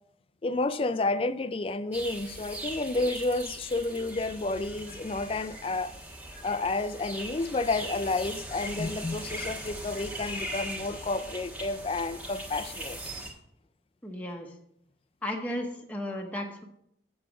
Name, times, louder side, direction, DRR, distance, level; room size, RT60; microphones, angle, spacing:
voice 1, 0.4-5.9 6.4-13.0, left 2 dB, 30° left, 0.4 m, -30 dB
sound 1, 1.9-13.3, right 1 dB, 10° right, 1.3 m, -40 dB
voice 2, 14.0-14.5 15.2-16.6, left 1 dB, 10° left, 0.8 m, -34 dB
7.2 x 6.9 x 6.0 m
head